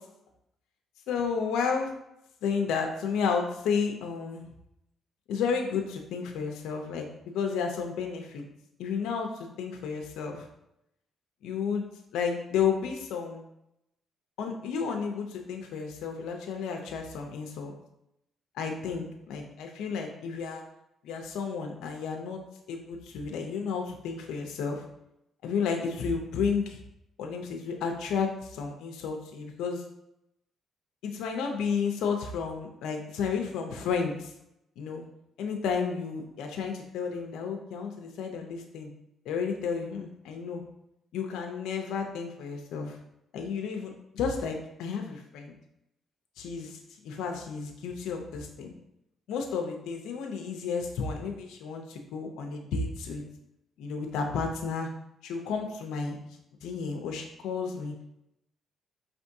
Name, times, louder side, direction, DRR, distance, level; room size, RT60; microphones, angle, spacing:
voice 1, 1.1-1.9 2.4-4.5 5.3-7.1 7.3-8.4 8.8-10.5 11.4-11.8 12.1-13.4 14.4-17.7 18.6-20.6 21.0-22.4 22.7-24.8 25.4-26.8 27.2-29.8 31.0-34.3 34.8-35.0 35.4-38.9 39.3-40.6 41.1-43.0 43.3-45.5 46.4-46.8 47.0-48.7 49.3-53.2 53.8-54.9 55.2-56.2 56.6-57.9, left 5 dB, 85° left, 3 dB, 0.5 m, -32 dB
5.2 x 3.4 x 2.7 m, 0.82 s
cardioid pair, 90°, 0 cm